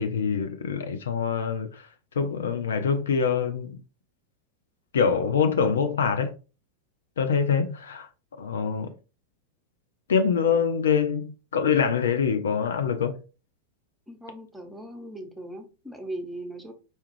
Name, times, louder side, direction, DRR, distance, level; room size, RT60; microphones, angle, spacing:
voice 1, 0.0-3.8 4.9-6.3 7.2-8.1 8.4-8.9 10.1-13.2, left 6 dB, 65° left, 0.4 m, -25 dB
voice 2, 14.1-16.7, right 1 dB, ahead, 0.8 m, -39 dB
4.3 x 2.3 x 3.0 m
figure-of-eight pair, 90°, 0 cm